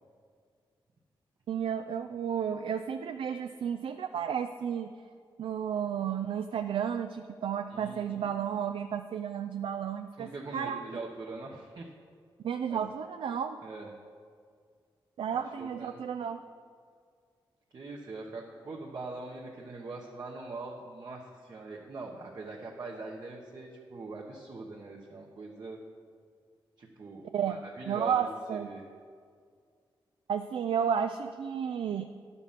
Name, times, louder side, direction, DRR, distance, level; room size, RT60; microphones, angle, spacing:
voice 1, 1.5-4.9 5.4-10.8 12.4-13.6 15.2-16.4 27.3-27.6 27.9-28.7 30.3-32.0, right 8 dB, 75° right, 8 dB, 0.4 m, -32 dB
voice 2, 7.7-8.3 10.2-11.9 12.7-12.8 13.6-13.9 15.3-16.0 17.7-25.8 26.8-28.8, right 3 dB, 50° right, -2 dB, 1.1 m, -42 dB
11.0 x 7.0 x 5.7 m, 2.1 s
wide cardioid pair, 100°, 9 cm